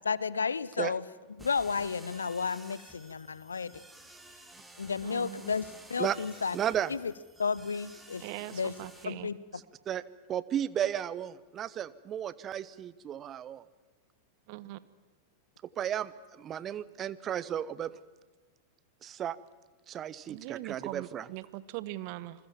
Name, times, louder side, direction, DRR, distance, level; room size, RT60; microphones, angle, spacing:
voice 1, 0.0-1.0 1.4-3.8 4.8-6.6 6.9-7.1 7.4-8.2 8.5-8.7 9.0-9.4, left 5 dB, 75° left, 20 dB, 0.8 m, -32 dB
sound 1, 1.4-9.0, right 1 dB, 5° right, 2.9 m, -53 dB
voice 2, 5.0-5.5 8.2-9.3 14.5-14.8 20.3-22.5, right 16 dB, 45° right, 17 dB, 1.1 m, -41 dB
voice 3, 6.5-6.9 9.9-10.0 10.3-13.6 15.8-17.9 19.0-19.4 19.9-21.3, right 10 dB, 30° right, 18 dB, 0.9 m, -34 dB
28.0 x 21.5 x 7.3 m, 1.3 s
figure-of-eight pair, 90°, 0 cm